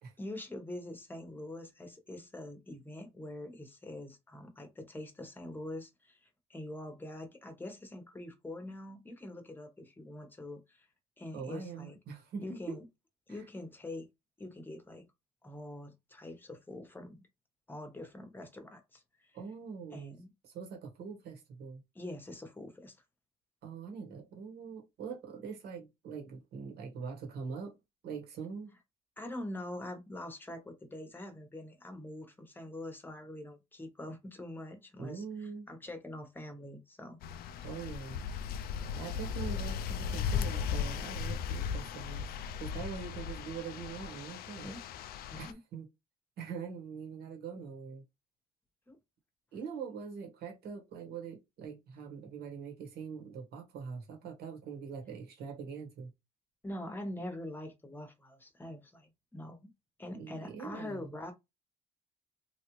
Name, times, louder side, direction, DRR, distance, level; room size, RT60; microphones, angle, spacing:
voice 1, 0.2-10.9 11.2-12.0 12.4-12.8 13.3-14.1 14.4-15.1 15.4-17.2 17.7-19.3 19.9-20.3 21.9-23.0 29.2-37.2 44.6-44.8 45.3-45.6 48.9-49.0 56.6-59.7 60.0-61.3, left 1 dB, 10° left, 0.9 m, -44 dB
voice 2, 11.3-12.8 13.3-13.4 19.3-20.1 20.4-21.8 23.6-27.8 28.0-28.8 35.0-35.7 37.6-38.2 38.9-44.7 45.4-45.9 46.4-48.0 49.5-56.1 60.1-61.1, right 6 dB, 70° right, 1.4 m, -43 dB
sound 1, 37.2-45.5, left 7 dB, 65° left, 0.4 m, -37 dB
3.1 x 2.4 x 3.0 m
cardioid pair, 110°, 17 cm